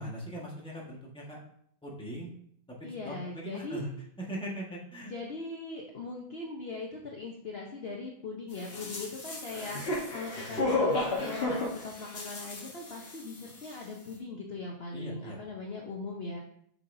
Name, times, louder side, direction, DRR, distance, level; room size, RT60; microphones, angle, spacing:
voice 1, 0.0-1.4 1.8-2.3 2.7-3.9 4.2-5.1 10.5-10.7 14.9-15.4, equal, 5° left, -3 dB, 1.2 m, -40 dB
voice 2, 2.8-3.8 5.1-16.4, left 3 dB, 60° left, -1 dB, 0.6 m, -40 dB
sound 1, 8.6-13.4 13.6-13.7, left 2 dB, 35° left, 1.3 m, -33 dB
7.6 x 5.6 x 2.7 m, 0.67 s
omnidirectional pair, 2.2 m